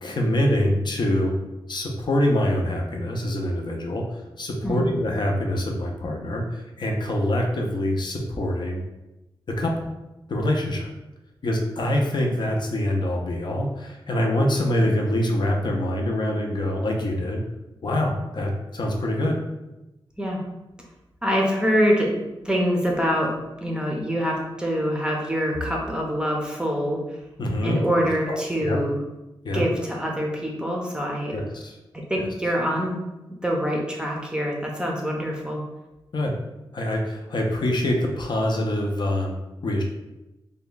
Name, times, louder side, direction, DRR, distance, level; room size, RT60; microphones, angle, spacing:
voice 1, 0.0-1.4 1.7-4.0 4.4-8.8 9.5-9.9 10.3-10.9 11.4-17.4 17.8-19.4 27.4-27.8 28.3-28.4 28.6-28.8 29.4-29.6 31.3-31.7 36.1-36.3 36.7-39.8, left 1 dB, 55° left, 1 dB, 0.5 m, -25 dB
voice 2, 4.6-4.9 20.2-20.4 21.2-23.3 23.6-27.2 27.6-29.0 29.5-31.4 31.9-33.0 33.3-35.6, equal, 10° right, -1 dB, 0.6 m, -25 dB
3.4 x 2.2 x 3.9 m, 0.99 s
wide cardioid pair, 145°, 9 cm